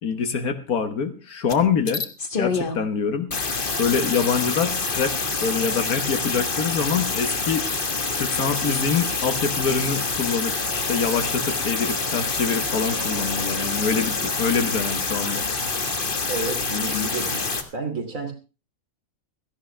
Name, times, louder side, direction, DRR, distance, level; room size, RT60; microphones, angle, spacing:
voice 1, 0.0-2.0 2.4-3.3 3.8-7.7 8.2-15.4, left 6 dB, 85° left, 8 dB, 1.9 m, -25 dB
sound 1, 1.5-1.6 1.9-2.8 3.3-17.6, left 4 dB, 40° left, 1.6 m, -26 dB
Wind instrument woodwind instrument, 10.6-14.7, right 10 dB, 85° right, 1.9 m, -43 dB
voice 2, 16.3-17.4 17.7-18.3, right 1 dB, 65° right, 4 dB, 3.3 m, -29 dB
17.0 x 14.0 x 3.4 m, 0.32 s
omnidirectional pair, 1.5 m